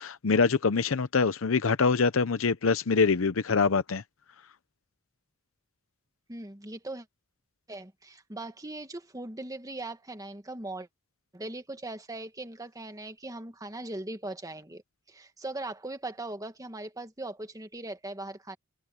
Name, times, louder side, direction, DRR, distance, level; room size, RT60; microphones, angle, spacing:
voice 1, 0.0-4.0, left 4 dB, 75° left, 0.7 m, -24 dB
voice 2, 6.3-7.1 7.7-10.9 11.3-14.8 15.1-18.6, right 2 dB, 15° right, 1.6 m, -39 dB
head